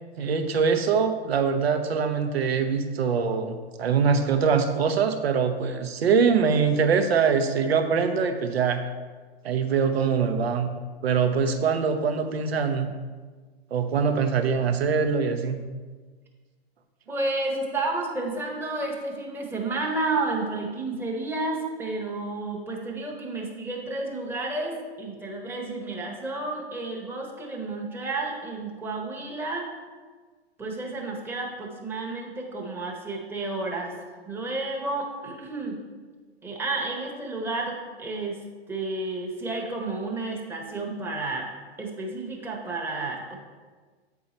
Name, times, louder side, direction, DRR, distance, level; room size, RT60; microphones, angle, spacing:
voice 1, 0.2-8.8 9.4-10.7 11.0-12.9 13.7-15.6, right 6 dB, 70° right, 7 dB, 0.8 m, -23 dB
voice 2, 17.1-29.7 30.6-33.9 34.3-35.8 36.4-38.4 38.7-41.5 41.8-43.4, right 2 dB, 5° right, -1 dB, 1.0 m, -31 dB
8.2 x 4.7 x 4.2 m, 1.4 s
hypercardioid pair, 110°, 32 cm